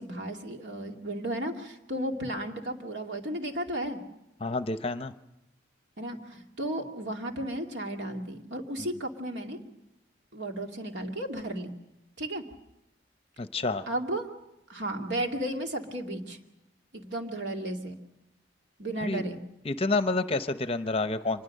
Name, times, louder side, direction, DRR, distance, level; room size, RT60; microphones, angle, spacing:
voice 1, 0.0-4.0 6.0-9.6 10.3-11.7 12.2-12.4 13.9-14.3 14.7-16.4 16.9-17.9 18.8-19.4, right 1 dB, 70° right, 3 dB, 2.3 m, -34 dB
voice 2, 4.4-5.1 13.4-13.8 19.0-19.3 19.6-21.4, left 3 dB, 30° left, 11 dB, 0.7 m, -29 dB
25.5 x 21.0 x 6.6 m, 0.90 s
head